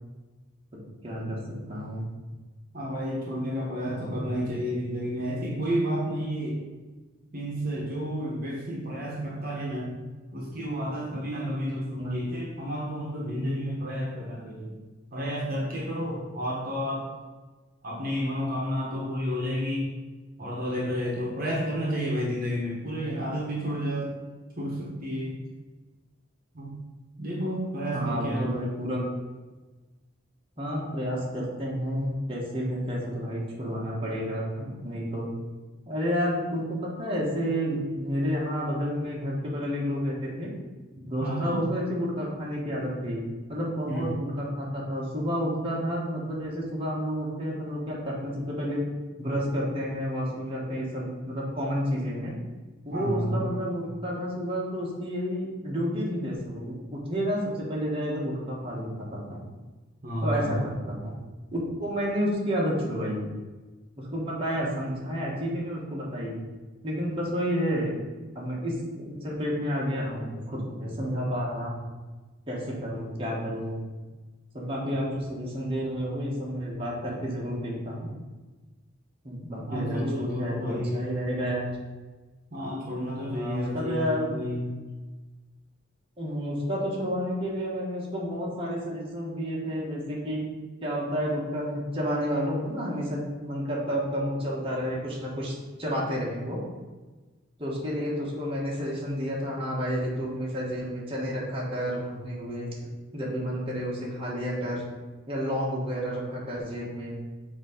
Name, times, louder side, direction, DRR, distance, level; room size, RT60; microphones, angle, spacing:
voice 1, 1.0-2.1 3.8-4.6 12.0-12.2 27.9-29.0 30.6-35.3 35.9-40.5 41.1-43.2 43.5-48.8 49.2-52.3 52.8-59.4 60.2-61.1 61.5-63.3 64.0-66.4 66.8-68.0 68.3-71.9 72.5-73.8 74.5-78.1 79.2-81.7 83.2-84.3 86.2-90.4 90.8-96.6 97.6-104.8 105.3-107.1, equal, 30° right, -5 dB, 1.4 m, -30 dB
voice 2, 2.7-6.6 7.3-10.0 10.3-14.8 15.1-17.1 17.8-19.9 20.4-24.1 24.6-25.4 26.5-26.7 27.2-28.5 41.2-41.6 43.9-44.2 52.9-53.5 60.0-60.5 79.7-81.1 82.5-84.8, equal, 45° right, -3 dB, 1.3 m, -31 dB
7.2 x 3.0 x 5.2 m, 1.3 s
head